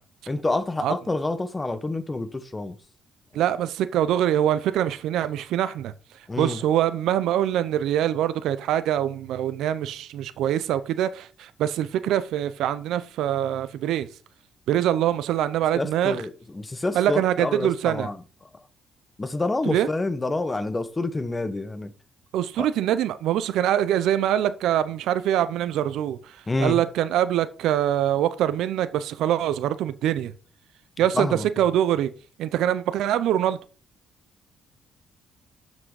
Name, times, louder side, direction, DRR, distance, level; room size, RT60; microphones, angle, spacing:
voice 1, 0.3-2.7 6.3-6.6 15.7-18.2 19.2-21.9 22.6-22.7 26.5-26.8 31.1-31.5, left 2 dB, 20° left, 1.1 m, -28 dB
voice 2, 3.3-5.9 6.4-14.1 14.7-16.2 16.9-18.1 19.7-19.9 22.3-30.3 31.0-32.1 32.4-33.6, right 11 dB, 85° right, 0.6 m, -24 dB
7.5 x 6.1 x 4.8 m
cardioid pair, 90°, 0 cm